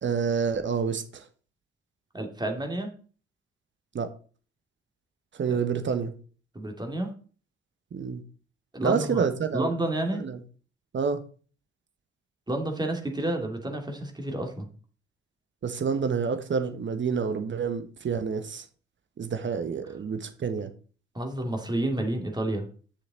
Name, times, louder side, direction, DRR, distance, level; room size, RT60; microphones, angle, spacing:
voice 1, 0.0-1.2 3.9-4.1 5.3-6.1 7.9-8.2 8.8-9.7 10.2-10.4 10.9-11.2 15.6-18.6 19.2-20.7, right 6 dB, 35° right, 1.4 m, -28 dB
voice 2, 2.1-2.9 5.5-5.6 6.5-7.1 8.7-9.2 9.5-10.2 12.5-14.7 21.1-22.6, right 1 dB, 15° right, 2.5 m, -30 dB
9.9 x 6.6 x 4.2 m
figure-of-eight pair, 45°, 32 cm